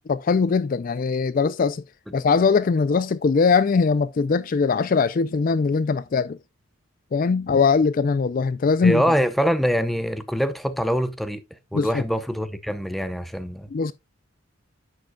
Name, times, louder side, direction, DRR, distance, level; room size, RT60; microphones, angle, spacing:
voice 1, 0.1-1.8 2.1-6.4 7.1-9.0 11.7-11.9 13.7-13.9, left 5 dB, 40° left, 0.3 m, -21 dB
voice 2, 8.8-11.4 11.7-13.7, equal, ahead, 0.7 m, -24 dB
10.5 x 7.7 x 2.3 m
head